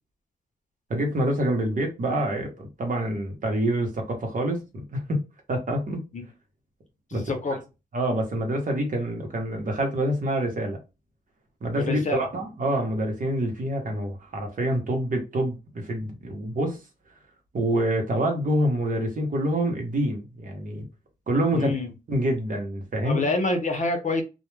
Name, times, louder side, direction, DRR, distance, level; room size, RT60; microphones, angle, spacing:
voice 1, 0.9-5.2 5.5-6.0 7.1-7.3 7.9-10.8 11.6-16.8 17.5-20.9 21.3-21.7 22.1-23.2, right 1 dB, 55° right, 0.9 m, -26 dB
voice 2, 7.1-7.6 11.8-12.3 21.5-21.9 23.0-24.2, left 2 dB, 50° left, 0.7 m, -27 dB
2.3 x 2.1 x 3.1 m
wide cardioid pair, 110°, 17 cm